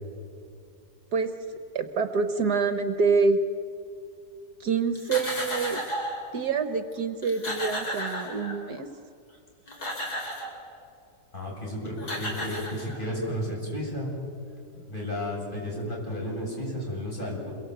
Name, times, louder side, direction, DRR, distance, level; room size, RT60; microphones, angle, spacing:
voice 1, 1.1-3.4 4.6-5.8 6.3-8.9, right 4 dB, 65° right, 9 dB, 1.6 m, -26 dB
sound 1, 4.9-6.3 6.9-7.0 7.2-8.8 9.5-10.6 11.6-11.7 12.0-13.2, equal, 60° left, 4.8 m, -34 dB
voice 2, 11.3-14.1 14.7-17.5, equal, 25° left, -2 dB, 7.8 m, -33 dB
28.0 x 23.0 x 8.1 m, 2.6 s
omnidirectional pair, 1.9 m